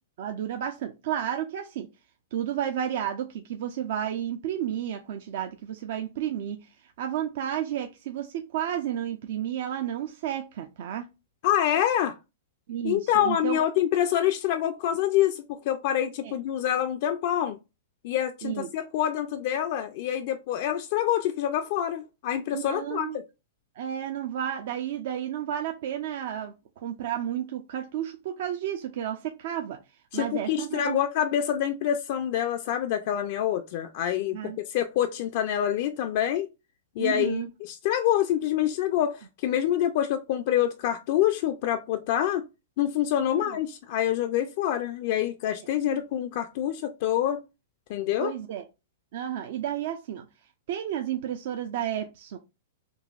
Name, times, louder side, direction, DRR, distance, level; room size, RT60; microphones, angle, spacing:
voice 1, 0.2-1.9 2.3-11.1 12.7-13.6 16.2-16.3 18.4-18.7 22.5-23.2 23.8-29.8 30.1-31.0 34.3-34.6 37.0-37.5 43.2-43.6 45.9-46.0 48.2-48.6 49.1-50.3 50.7-52.4, right 10 dB, 60° right, 0.4 m, -32 dB
voice 2, 11.4-12.2 12.8-17.6 18.0-23.2 30.1-36.5 37.0-42.5 42.8-47.4 47.9-48.3, left 11 dB, 50° left, 0.3 m, -26 dB
3.9 x 2.7 x 2.3 m
hypercardioid pair, 110°, 0 cm